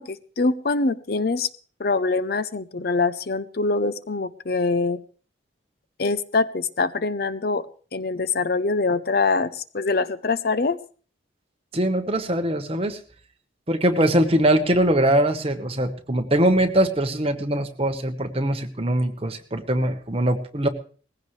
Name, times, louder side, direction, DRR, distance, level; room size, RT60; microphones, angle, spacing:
voice 1, 0.0-1.5 1.8-5.0 6.0-10.8, left 3 dB, 50° left, 15 dB, 0.6 m, -24 dB
voice 2, 11.7-13.0 13.7-20.7, right 1 dB, 30° right, 6 dB, 1.2 m, -22 dB
19.5 x 16.0 x 3.3 m, 0.42 s
head